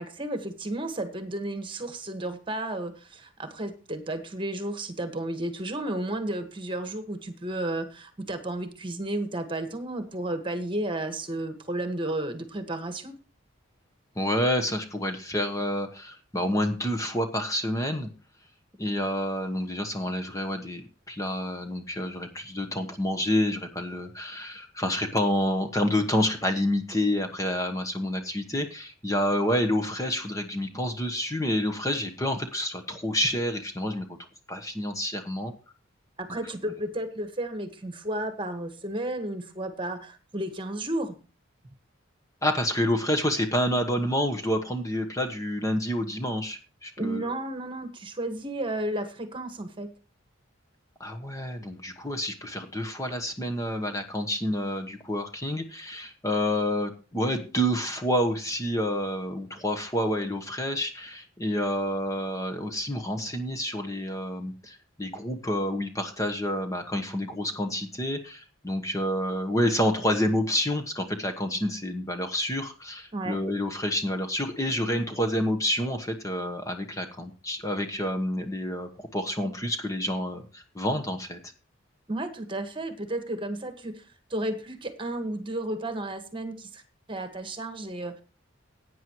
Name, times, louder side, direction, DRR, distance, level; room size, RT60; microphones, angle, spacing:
voice 1, 0.0-13.2 36.2-41.1 47.0-49.9 73.1-73.4 82.1-84.0 84.3-86.8 87.1-88.2, right 1 dB, 25° right, 8 dB, 1.6 m, -33 dB
voice 2, 14.2-18.1 18.8-34.1 34.5-35.5 36.3-36.4 42.4-47.3 51.0-81.4, left 1 dB, 15° left, 6 dB, 1.1 m, -28 dB
16.5 x 9.2 x 3.1 m, 0.34 s
head